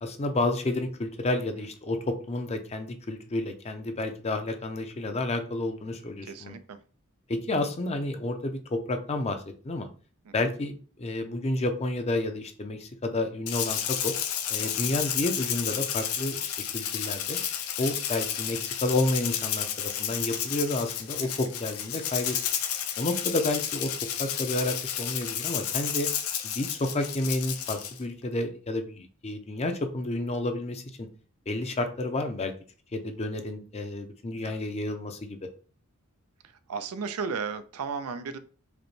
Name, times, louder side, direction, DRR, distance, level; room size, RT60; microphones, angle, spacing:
voice 1, 0.0-6.6 7.3-9.9 10.3-14.1 14.5-17.4 17.8-22.4 23.0-23.9 24.2-26.1 26.4-31.1 31.5-32.5 32.9-35.4, left 2 dB, 30° left, 7 dB, 0.5 m, -30 dB
voice 2, 6.2-6.8 10.3-10.4 14.6-14.9 21.2-21.4 34.4-34.6 36.4-38.4, right 5 dB, 85° right, 11 dB, 0.4 m, -35 dB
Rattle (instrument), 13.5-28.0, left 9 dB, 85° left, 0.6 m, -31 dB
5.0 x 2.2 x 3.1 m, 0.39 s
head